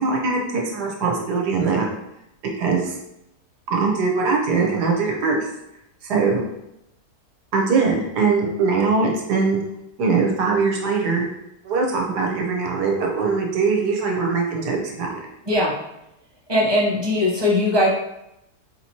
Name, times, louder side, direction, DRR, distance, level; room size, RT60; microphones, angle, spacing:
voice 1, 0.0-1.9 2.6-2.9 3.7-5.5 6.0-6.4 7.5-9.6 10.0-11.3 11.6-15.1, right 4 dB, 80° right, 0 dB, 1.3 m, -21 dB
voice 2, 16.5-17.9, left 1 dB, 20° right, -5 dB, 0.7 m, -19 dB
4.9 x 2.9 x 2.8 m, 0.84 s
omnidirectional pair, 1.7 m